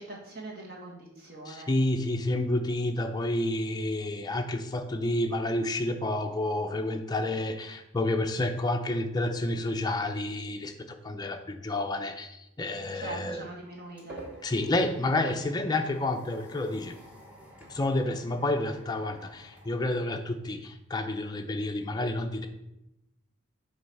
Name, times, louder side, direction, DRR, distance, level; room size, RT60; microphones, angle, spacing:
voice 1, 0.0-1.7 12.9-14.2, right 2 dB, 50° right, -2 dB, 1.7 m, -42 dB
voice 2, 1.5-13.4 14.4-16.9 17.7-22.5, left 2 dB, 20° left, 5 dB, 0.5 m, -29 dB
sound 1, 13.5-20.7, right 1 dB, 5° right, 1.0 m, -51 dB
7.8 x 3.1 x 5.4 m, 0.89 s
head